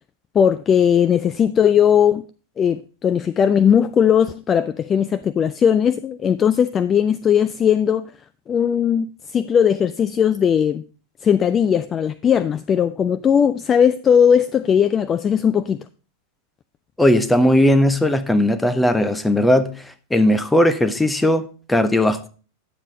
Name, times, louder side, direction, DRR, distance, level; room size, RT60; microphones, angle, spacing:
voice 1, 0.3-2.2 2.6-8.1 8.5-10.8 11.2-15.8, left 8 dB, 25° left, 0.3 m, -18 dB
voice 2, 17.0-19.7 20.1-21.4 21.7-22.3, left 1 dB, 5° left, 0.8 m, -17 dB
9.7 x 7.3 x 3.8 m
figure-of-eight pair, 90°, 0 cm